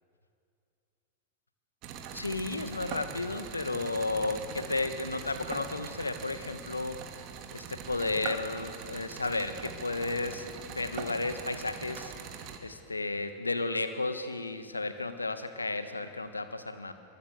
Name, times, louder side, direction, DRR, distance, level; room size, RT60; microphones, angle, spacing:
sound 1, 1.8-12.6, right 7 dB, 40° right, 2.7 m, -42 dB
voice 1, 2.1-7.0 7.5-12.1 12.6-16.9, left 3 dB, 80° left, 9 dB, 1.8 m, -33 dB
26.0 x 23.5 x 6.8 m, 2.4 s
figure-of-eight pair, 90°, 0 cm